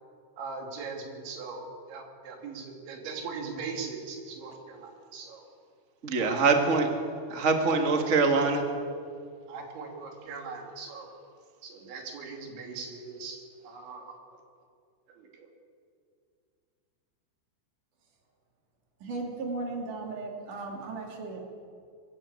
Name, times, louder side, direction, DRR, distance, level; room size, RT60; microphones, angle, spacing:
voice 1, 0.4-5.5 6.2-6.5 9.5-11.1 11.6-14.2 15.2-15.5, right 4 dB, 90° right, 1 dB, 5.0 m, -40 dB
voice 2, 6.0-6.9 7.3-8.6, right 4 dB, 70° right, 3 dB, 0.7 m, -24 dB
voice 3, 19.0-21.4, right 3 dB, 50° right, 0 dB, 4.0 m, -36 dB
22.5 x 14.5 x 8.4 m, 2.4 s
omnidirectional pair, 5.1 m